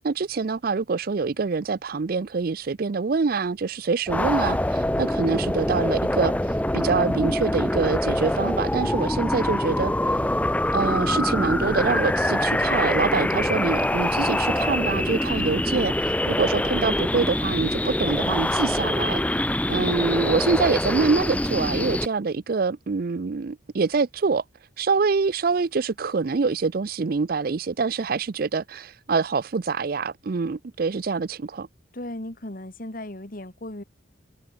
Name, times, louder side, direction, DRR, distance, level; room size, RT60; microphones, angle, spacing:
voice 1, 0.0-6.3 6.7-10.2 10.7-24.4 24.8-31.7, right 4 dB, 45° right, 0.4 m, -25 dB
sound 1, 4.1-22.1, left 1 dB, 5° left, 0.8 m, -24 dB
voice 2, 31.9-33.8, left 1 dB, 45° left, 1.8 m, -36 dB
head